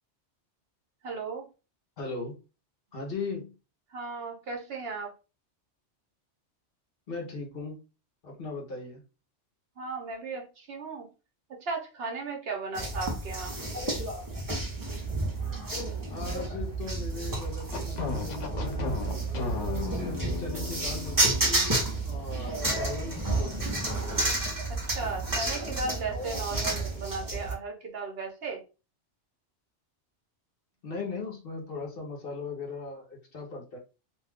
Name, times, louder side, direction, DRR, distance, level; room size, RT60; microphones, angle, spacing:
voice 1, 1.0-1.5 3.9-5.1 9.8-11.1 11.6-13.6 24.9-28.6, right 4 dB, 60° right, 0.9 m, -36 dB
voice 2, 2.0-2.4 2.9-3.5 7.1-7.8 8.2-9.0 16.1-21.7 22.0-23.8 30.8-33.8, left 3 dB, 55° left, 1.0 m, -39 dB
sound 1, 12.8-27.5, right 2 dB, 20° right, 0.7 m, -31 dB
sound 2, 17.7-21.8, left 5 dB, 85° left, 1.0 m, -35 dB
2.6 x 2.3 x 3.4 m
omnidirectional pair, 1.2 m